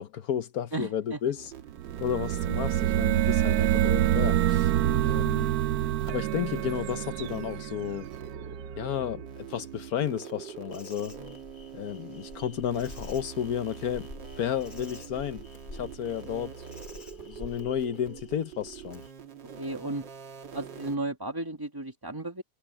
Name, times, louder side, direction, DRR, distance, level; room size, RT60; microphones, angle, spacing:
voice 1, 0.0-1.5 2.0-4.7 5.0-5.5 6.0-8.1 8.8-11.2 11.7-14.1 14.4-15.4 15.7-16.5 17.0-19.0, left 9 dB, 60° left, 1.2 m, -32 dB
voice 2, 0.7-1.2 4.8-5.3 11.2-11.4 16.3-16.5 19.6-20.0 20.5-22.4, right 2 dB, 15° right, 1.6 m, -35 dB
sound 1, 1.4-21.0, right 7 dB, 90° right, 2.4 m, -44 dB
sound 2, 1.8-8.5, right 13 dB, 70° right, 1.0 m, -26 dB
Insect, 10.7-19.1, left 2 dB, 25° left, 2.4 m, -48 dB
omnidirectional pair, 1.9 m